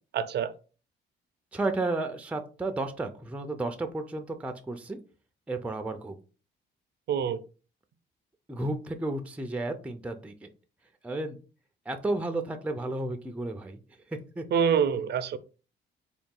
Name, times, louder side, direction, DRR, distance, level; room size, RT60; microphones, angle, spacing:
voice 1, 0.1-0.5 7.1-7.4 14.5-15.4, right 7 dB, 60° right, 0.5 m, -26 dB
voice 2, 1.5-5.0 5.5-6.2 8.5-10.5 11.0-11.4 11.9-13.8 14.1-14.4, right 2 dB, 5° right, 0.5 m, -32 dB
3.8 x 2.3 x 3.6 m
cardioid pair, 90°, 20 cm